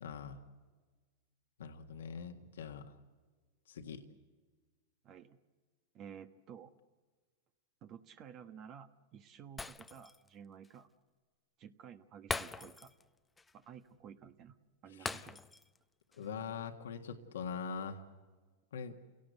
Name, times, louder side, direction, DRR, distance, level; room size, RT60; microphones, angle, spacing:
voice 1, 0.0-0.4 1.6-2.9 3.7-4.0 14.9-15.3 16.2-18.0 18.7-18.9, left 6 dB, 85° left, 4 dB, 1.7 m, -43 dB
voice 2, 5.0-5.4 5.9-6.7 7.8-10.9 11.6-12.9 13.5-14.6 14.8-15.4, right 8 dB, 40° right, 8 dB, 1.2 m, -53 dB
Shatter, 9.6-10.3 10.6-10.8 12.3-13.1 13.4-13.5 15.1-15.8 16.1-16.3, left 3 dB, 10° left, 0.7 m, -41 dB
29.0 x 17.5 x 8.2 m, 1.4 s
hypercardioid pair, 120°, 0 cm